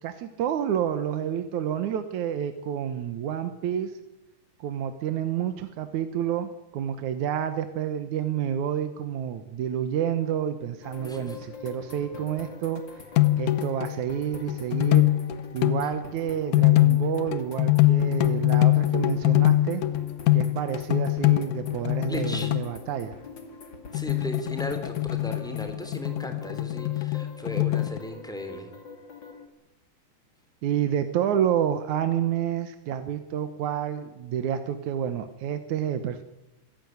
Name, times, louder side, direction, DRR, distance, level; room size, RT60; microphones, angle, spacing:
voice 1, 0.0-3.9 4.6-13.0 13.4-15.1 15.5-19.8 20.3-23.1 30.6-36.2, right 9 dB, 70° right, 9 dB, 2.5 m, -29 dB
sound 1, 10.8-29.5, left 5 dB, 40° left, 2.7 m, -45 dB
voice 2, 11.0-11.4 22.1-22.5 23.9-28.7, equal, ahead, 6 dB, 3.2 m, -36 dB
sound 2, 13.2-14.0 14.5-16.0 16.5-22.7 23.9-28.0, left 16 dB, 75° left, 2.4 m, -23 dB
25.0 x 15.0 x 9.5 m, 0.96 s
omnidirectional pair, 3.6 m